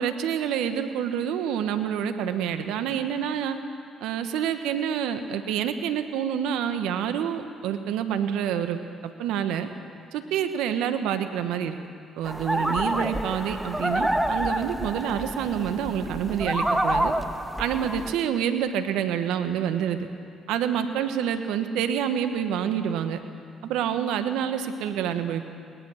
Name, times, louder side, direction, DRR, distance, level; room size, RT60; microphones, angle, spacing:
voice 1, 0.0-3.6 4.0-8.8 9.2-9.7 10.1-11.8 12.2-17.1 17.6-20.1 20.5-23.2 23.6-25.5, right 9 dB, 80° right, 9 dB, 1.2 m, -27 dB
sound 1, 12.2-18.1, right 1 dB, 5° right, 1.3 m, -28 dB
22.0 x 18.5 x 6.4 m, 2.3 s
supercardioid pair, 60°, 0 cm